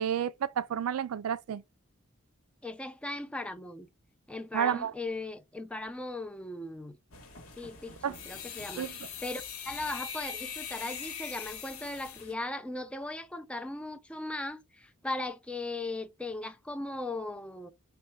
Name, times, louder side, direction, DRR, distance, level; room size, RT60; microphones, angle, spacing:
voice 1, 0.0-1.6 4.5-4.9 8.0-8.2 8.8-8.9, right 8 dB, 80° right, 0.3 m, -30 dB
voice 2, 2.6-3.9 4.3-7.0 7.6-8.0 8.3-17.7, left 2 dB, 5° left, 0.3 m, -38 dB
sound 1, 7.1-12.3, left 7 dB, 80° left, 1.1 m, -42 dB
4.2 x 2.2 x 4.5 m
head